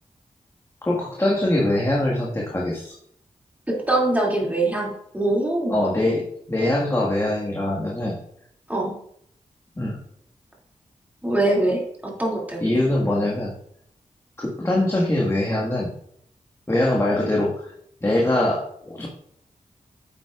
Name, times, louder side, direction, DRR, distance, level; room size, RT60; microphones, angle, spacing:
voice 1, 0.9-2.9 5.7-8.2 9.8-10.0 12.6-13.5 14.4-15.9 16.7-17.7 18.0-19.1, left 1 dB, 20° left, -4 dB, 1.8 m, -23 dB
voice 2, 3.7-5.8 8.7-9.0 11.2-12.8, right 2 dB, 10° right, -3 dB, 2.6 m, -23 dB
9.3 x 8.0 x 2.5 m, 0.68 s
cardioid pair, 70°, 13 cm